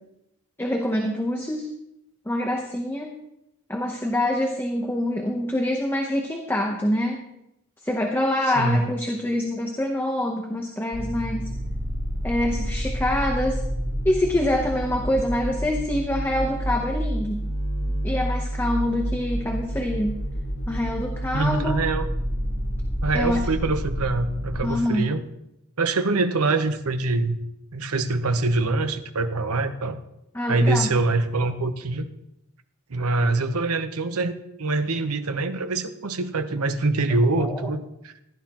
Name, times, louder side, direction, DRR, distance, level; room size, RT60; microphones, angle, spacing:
voice 1, 0.6-1.7 2.3-3.2 3.7-7.2 7.8-11.5 12.2-13.6 14.0-17.4 18.0-20.2 20.7-21.8 23.1-23.5 24.6-25.1 30.3-30.9 37.4-37.7, left 1 dB, 10° left, 2 dB, 0.8 m, -25 dB
voice 2, 8.6-8.9 21.3-22.1 23.0-25.2 25.8-27.4 27.7-30.0 30.5-32.1 32.9-38.1, right 3 dB, 85° right, 9 dB, 0.9 m, -24 dB
sound 1, 10.9-24.6, equal, 85° left, 4.6 m, -29 dB
15.5 x 11.5 x 3.0 m, 0.84 s
head